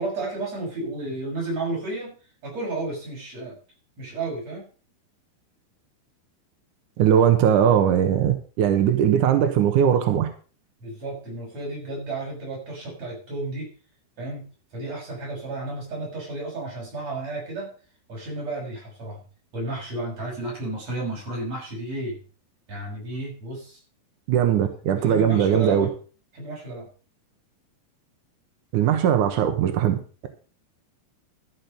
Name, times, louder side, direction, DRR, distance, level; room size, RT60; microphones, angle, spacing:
voice 1, 0.0-2.1 2.4-3.6 4.0-4.7 10.8-13.7 14.2-14.4 14.7-17.7 18.1-19.2 19.5-22.2 22.7-23.8 25.0-25.9 26.3-26.9, right 2 dB, 35° right, -2 dB, 7.4 m, -32 dB
voice 2, 7.0-10.3 24.3-25.9 28.7-30.3, right 9 dB, 75° right, 6 dB, 1.9 m, -20 dB
13.5 x 6.6 x 6.8 m, 0.39 s
omnidirectional pair, 5.3 m